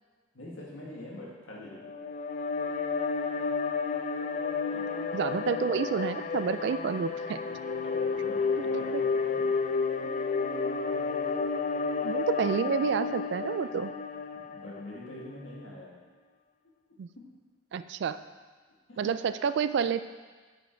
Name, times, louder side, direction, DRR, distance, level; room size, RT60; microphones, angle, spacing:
voice 1, 0.3-2.0 4.6-4.8 7.6-9.6 14.3-16.0 17.2-17.3 18.9-19.2, left 1 dB, 85° left, -4 dB, 1.8 m, -45 dB
sound 1, 1.7-15.1, left 5 dB, 40° left, 0.3 m, -31 dB
voice 2, 5.1-7.4 8.6-9.0 12.0-13.9 17.0-17.1 17.7-18.2 19.0-20.0, right 6 dB, 60° right, 12 dB, 0.3 m, -29 dB
6.2 x 6.0 x 4.5 m, 1.4 s
head